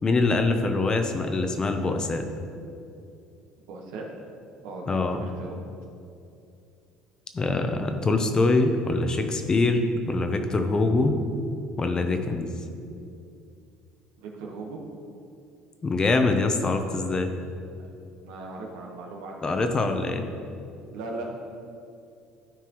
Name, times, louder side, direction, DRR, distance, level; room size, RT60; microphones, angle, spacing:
voice 1, 0.0-2.2 4.9-5.2 7.3-11.2 11.8-12.5 15.8-17.3 19.4-20.2, left 3 dB, 30° left, 6 dB, 0.8 m, -24 dB
voice 2, 3.6-4.1 4.6-5.6 14.2-14.8 17.8-17.9 18.2-20.0 20.9-21.3, right 3 dB, 85° right, 0 dB, 1.3 m, -38 dB
13.0 x 4.6 x 3.1 m, 2.5 s
supercardioid pair, 85°, 3 cm